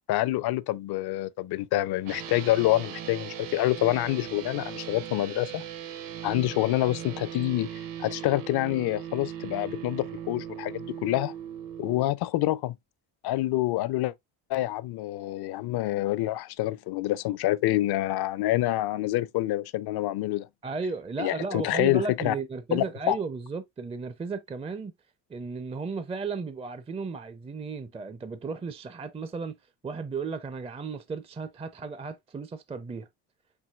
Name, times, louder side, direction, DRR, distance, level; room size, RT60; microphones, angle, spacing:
voice 1, 0.1-5.6 6.2-11.3 11.8-12.8 13.2-14.1 14.5-20.5 21.2-22.3 22.7-23.2, left 16 dB, 60° left, 0.5 m, -27 dB
sound 1, 2.0-12.0, right 10 dB, 50° right, 0.8 m, -39 dB
voice 2, 20.6-24.9 25.3-29.6 29.8-33.1, right 4 dB, 15° right, 0.4 m, -34 dB
4.6 x 3.8 x 2.3 m
supercardioid pair, 85°, 43 cm